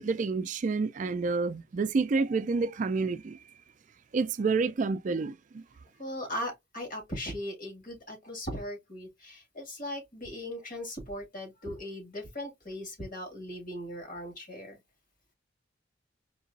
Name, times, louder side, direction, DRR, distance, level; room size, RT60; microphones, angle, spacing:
voice 1, 0.0-3.4 4.1-5.6, right 4 dB, 40° right, 0.4 m, -29 dB
voice 2, 6.0-14.8, equal, 45° left, 2.2 m, -38 dB
4.6 x 3.0 x 2.6 m
head